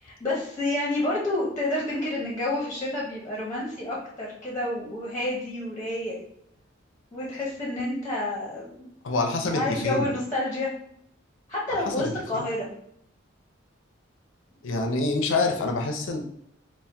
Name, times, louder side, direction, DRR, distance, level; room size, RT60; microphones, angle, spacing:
voice 1, 0.0-6.2 7.1-8.9 9.4-10.7 11.5-12.7, left 2 dB, 15° left, -4 dB, 0.7 m, -29 dB
voice 2, 9.0-10.1 11.7-12.4 14.6-16.2, left 3 dB, 75° left, 4 dB, 0.5 m, -27 dB
4.4 x 2.1 x 3.4 m, 0.72 s
head